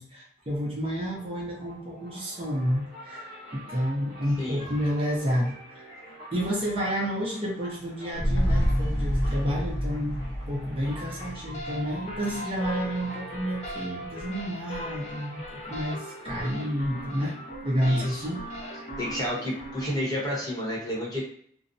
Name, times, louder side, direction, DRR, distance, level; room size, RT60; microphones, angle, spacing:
voice 1, 0.0-5.9 6.3-17.4 17.6-18.4, equal, 30° right, -4 dB, 0.6 m, -30 dB
sound 1, 1.1-20.5, right 1 dB, 55° right, 0.9 m, -46 dB
sound 2, 8.1-12.7 13.0-13.1, equal, 75° left, 0.6 m, -28 dB
sound 3, 11.5-19.9, equal, 35° left, 0.4 m, -39 dB
voice 2, 17.8-18.2 19.0-21.2, equal, 20° left, -5 dB, 0.8 m, -31 dB
2.4 x 2.0 x 2.6 m, 0.63 s
head